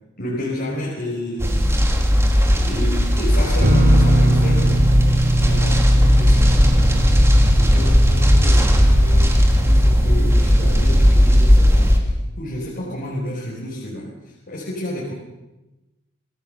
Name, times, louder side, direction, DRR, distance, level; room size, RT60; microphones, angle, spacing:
voice 1, 0.2-1.8 2.6-4.8 5.4-7.1 7.5-15.1, left 1 dB, 50° left, -4 dB, 5.0 m, -30 dB
sound 1, 1.4-12.0, equal, 15° right, 3.1 m, -15 dB
sound 2, 3.6-11.2, right 1 dB, 45° right, 2.7 m, -22 dB
26.5 x 18.0 x 6.9 m, 1.0 s
head